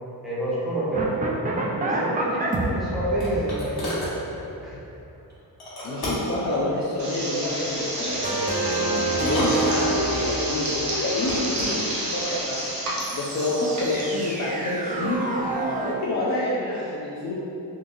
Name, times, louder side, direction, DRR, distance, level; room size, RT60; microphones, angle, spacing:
voice 1, 0.2-1.1 1.8-4.2 4.6-4.8, right 1 dB, ahead, -9 dB, 0.9 m, -28 dB
sound 1, 0.9-5.0 8.2-12.0 13.0-15.9, right 2 dB, 20° right, 0.4 m, -28 dB
sound 2, 2.4-4.2 5.6-6.4 7.8-8.2 9.1-10.2 11.0-11.8, left 1 dB, 65° left, 1.2 m, -33 dB
voice 2, 5.8-15.2 15.8-17.3, left 1 dB, 45° left, -6 dB, 0.5 m, -28 dB
sound 3, 7.0-14.3, right 1 dB, 45° right, 0.8 m, -31 dB
3.8 x 2.6 x 2.6 m, 2.9 s
cardioid pair, 85°, 41 cm